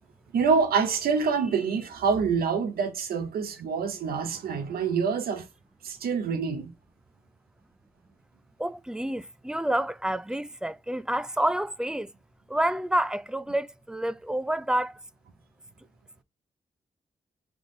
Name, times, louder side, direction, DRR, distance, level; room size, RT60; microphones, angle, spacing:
voice 1, 0.3-5.5 5.8-6.7, right 5 dB, 90° right, 0.7 m, -26 dB
voice 2, 8.6-12.1 12.5-14.9, right 1 dB, 5° right, 0.4 m, -28 dB
3.5 x 3.4 x 3.8 m
cardioid pair, 50°, 15 cm